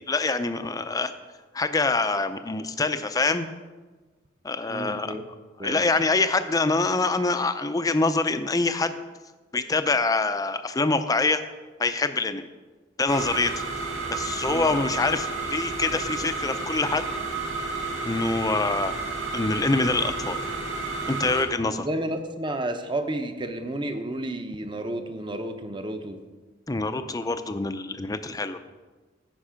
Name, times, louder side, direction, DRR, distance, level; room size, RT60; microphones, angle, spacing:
voice 1, 0.1-1.1 1.5-3.5 4.4-5.1 5.6-8.9 9.5-11.4 11.8-12.5 13.0-13.5 14.1-17.1 18.1-19.0 19.3-20.4 21.1-21.9 26.7-28.6, left 3 dB, 20° left, 9 dB, 0.5 m, -25 dB
voice 2, 4.7-5.2 5.6-5.9 14.5-14.8 21.8-26.2, right 1 dB, 25° right, 7 dB, 0.8 m, -31 dB
sound 1, 13.1-21.4, right 3 dB, 85° right, 1.7 m, -31 dB
15.0 x 5.4 x 5.0 m, 1.3 s
head